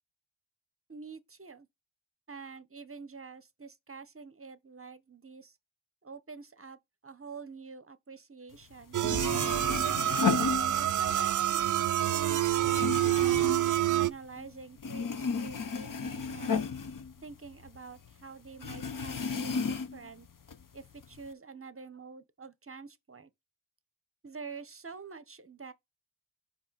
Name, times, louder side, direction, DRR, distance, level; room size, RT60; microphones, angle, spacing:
voice 1, 0.9-1.7 2.3-5.6 6.0-9.8 10.7-13.5 13.9-16.7 17.2-20.3 20.7-23.3 24.2-25.7, right 5 dB, 25° right, 0.8 m, -47 dB
sound 1, 8.7-8.8 9.0-11.2 11.6-14.5 14.8-17.8 18.1-18.2 18.6-20.1 20.5-21.2, left 5 dB, 40° left, 0.8 m, -34 dB
sound 2, 8.9-14.1, right 12 dB, 40° right, 0.4 m, -27 dB
5.5 x 4.4 x 4.1 m
cardioid pair, 60°, 50 cm